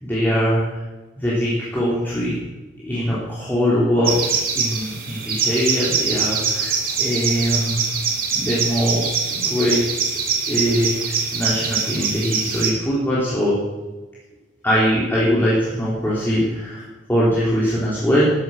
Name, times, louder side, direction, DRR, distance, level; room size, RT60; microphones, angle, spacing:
voice 1, 0.0-0.8 1.2-2.4 2.8-4.3 4.5-7.9 8.3-9.8 10.5-13.6 14.6-18.3, equal, 10° left, -9 dB, 3.6 m, -21 dB
sound 1, 4.0-12.7, right 6 dB, 50° right, 2.8 m, -23 dB
13.5 x 11.0 x 6.7 m, 1.2 s
head